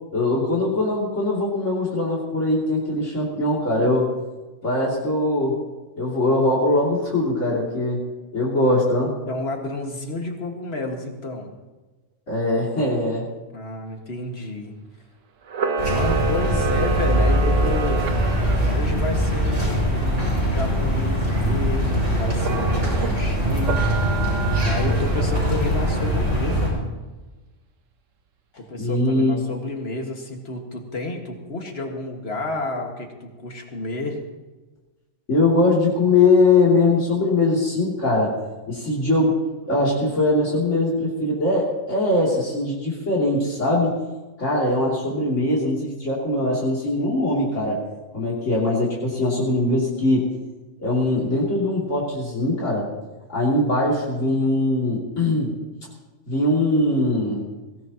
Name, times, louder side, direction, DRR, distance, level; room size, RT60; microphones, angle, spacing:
voice 1, 0.1-4.1 4.6-5.6 6.0-8.0 8.3-9.1 12.3-13.3 28.8-29.4 35.3-38.3 38.7-39.3 39.6-43.9 44.4-47.8 48.1-50.2 50.8-52.9 53.3-55.5 56.3-57.4, left 2 dB, 75° left, -6 dB, 3.4 m, -21 dB
voice 2, 9.3-11.5 13.5-14.7 15.9-18.0 18.7-23.8 24.7-26.9 28.6-34.2, left 2 dB, 55° left, 2 dB, 2.2 m, -30 dB
Camera, 15.5-18.8 22.3-23.1 23.6-25.4, right 5 dB, 85° right, 1.4 m, -28 dB
sound 1, 15.8-26.7, equal, 70° right, 6.4 m, -22 dB
22.0 x 17.5 x 3.0 m, 1.2 s
omnidirectional pair, 1.3 m